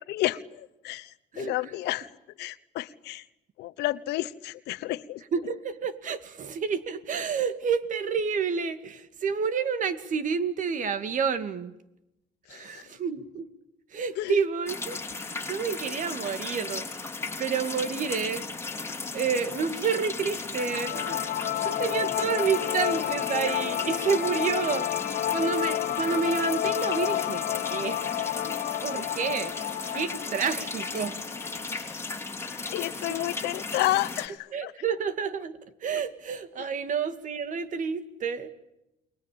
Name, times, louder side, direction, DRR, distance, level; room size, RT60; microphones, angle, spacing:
voice 1, 0.1-2.1 2.4-3.2 3.6-5.2 12.5-12.8 14.2-14.4 31.7-32.0 32.5-34.7, left 16 dB, 85° left, 13 dB, 1.1 m, -31 dB
voice 2, 5.3-11.7 12.5-13.5 13.9-16.9 17.4-18.4 19.1-21.2 21.5-31.3 33.1-33.2 34.5-38.5, right 6 dB, 50° right, 11 dB, 2.4 m, -30 dB
sound 1, 14.7-34.3, left 3 dB, 15° left, 3.0 m, -36 dB
sound 2, 20.6-31.6, left 13 dB, 60° left, 1.0 m, -30 dB
29.5 x 21.5 x 8.7 m, 0.89 s
cardioid pair, 110°, 17 cm